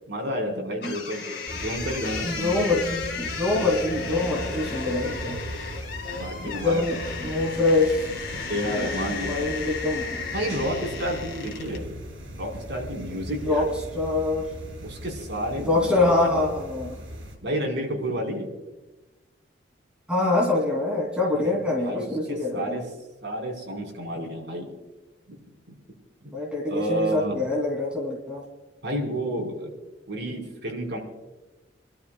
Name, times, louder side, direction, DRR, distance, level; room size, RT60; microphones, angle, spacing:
voice 1, 0.1-2.6 6.1-7.0 8.5-9.4 10.3-12.0 12.3-13.7 14.8-16.3 17.4-18.6 21.3-22.8 23.2-24.7 25.3-25.4 25.7-25.8 26.7-27.4 28.8-29.7 30.1-31.0, right 1 dB, 60° right, -1 dB, 4.5 m, -30 dB
sound 1, 0.8-11.9, left 5 dB, 55° left, 2.2 m, -34 dB
sound 2, 1.5-17.4, equal, 85° right, 5.5 m, -39 dB
voice 2, 2.2-5.4 6.4-8.1 8.6-8.9 9.1-10.2 13.4-13.7 13.9-14.5 15.6-17.0 20.1-22.8 26.3-28.4, left 2 dB, 5° right, -3 dB, 2.8 m, -25 dB
29.0 x 12.5 x 2.3 m, 1.1 s
head